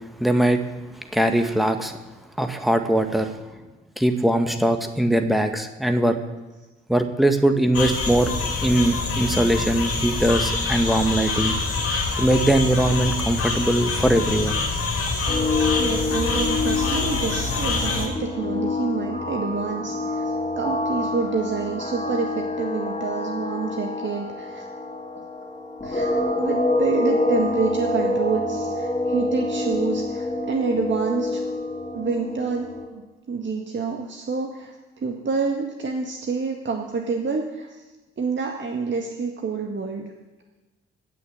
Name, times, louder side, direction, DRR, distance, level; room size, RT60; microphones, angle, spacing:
voice 1, 0.2-0.6 1.1-2.0 2.4-3.3 4.0-6.2 6.9-8.3 8.6-11.6 12.2-14.6, right 1 dB, ahead, 6 dB, 1.7 m, -21 dB
sound 1, 7.7-18.1, left 3 dB, 50° left, 4.1 m, -25 dB
sound 2, 15.3-32.9, left 2 dB, 20° left, 3.6 m, -27 dB
voice 2, 15.8-24.7 25.8-31.4 31.9-37.8 38.2-40.1, right 5 dB, 40° right, 2 dB, 1.9 m, -28 dB
17.0 x 6.5 x 7.9 m, 1.2 s
figure-of-eight pair, 45°, 31 cm